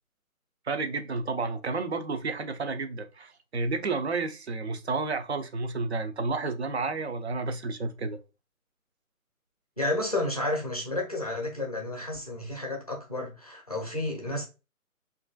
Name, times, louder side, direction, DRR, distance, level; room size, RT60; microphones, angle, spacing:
voice 1, 0.7-8.2, right 3 dB, 50° right, 0.5 m, -31 dB
voice 2, 9.8-14.4, left 2 dB, 30° left, 0.5 m, -31 dB
2.9 x 2.5 x 2.3 m
figure-of-eight pair, 160°, 43 cm